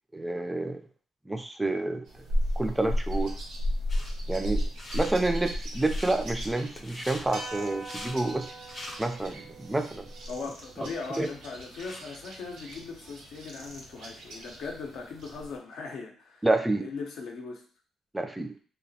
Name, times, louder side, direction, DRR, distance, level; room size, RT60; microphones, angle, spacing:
voice 1, 0.1-0.8 1.3-2.1 2.6-3.3 4.3-4.6 4.9-8.5 9.0-10.1 11.2-11.3 16.4-16.9 18.1-18.5, right 2 dB, 10° right, 6 dB, 0.3 m, -28 dB
sound 1, 2.1-15.6, equal, 85° right, 0.8 m, -35 dB
sound 2, 3.9-4.1 4.6-5.2 5.7-6.1 6.7-7.2 7.7-8.2 8.6-9.3 9.8-9.9 10.6-10.7 10.9-12.1, left 1 dB, 35° left, 0.6 m, -43 dB
sound 3, 7.3-11.7, right 3 dB, 70° right, 0.5 m, -45 dB
voice 2, 10.3-16.5 16.8-17.6, left 4 dB, 75° left, 2 dB, 0.6 m, -39 dB
2.8 x 2.0 x 2.7 m, 0.43 s
cardioid pair, 90°, 0 cm